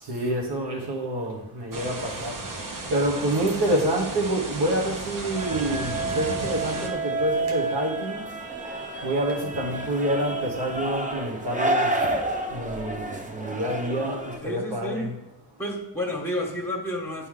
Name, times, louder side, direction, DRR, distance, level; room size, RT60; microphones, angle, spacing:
voice 1, 0.0-2.4 2.9-8.3 9.0-12.0 12.5-15.2, right 1 dB, 85° right, -1 dB, 1.4 m, -27 dB
sound 1, 1.7-6.9, right 2 dB, 55° right, 1.1 m, -34 dB
sound 2, 5.3-14.4, right 2 dB, 20° right, 0.8 m, -30 dB
voice 2, 14.4-15.1 15.6-17.3, left 1 dB, 5° left, 1 dB, 1.3 m, -30 dB
10.0 x 4.8 x 3.8 m, 0.87 s
wide cardioid pair, 125°, 39 cm